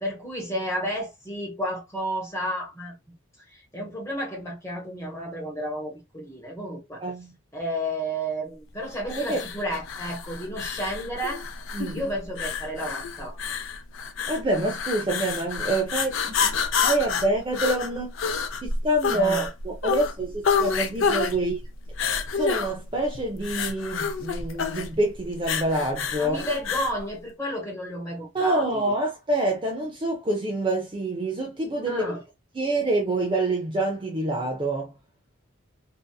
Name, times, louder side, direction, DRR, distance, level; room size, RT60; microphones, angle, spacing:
voice 1, 0.0-3.0 3.5-7.0 7.5-11.4 11.9-13.4 19.1-19.5 26.2-28.9 31.8-32.2, equal, 15° left, 1.1 m, -32 dB
voice 2, 7.0-7.3 9.1-9.4 11.7-12.0 14.3-16.6 16.8-18.1 18.6-21.6 22.3-26.4 28.3-32.2 32.5-34.9, right 2 dB, 25° right, 0.4 m, -26 dB
sound 1, 9.1-27.0, left 6 dB, 65° left, 0.5 m, -28 dB
2.7 x 2.4 x 2.2 m
head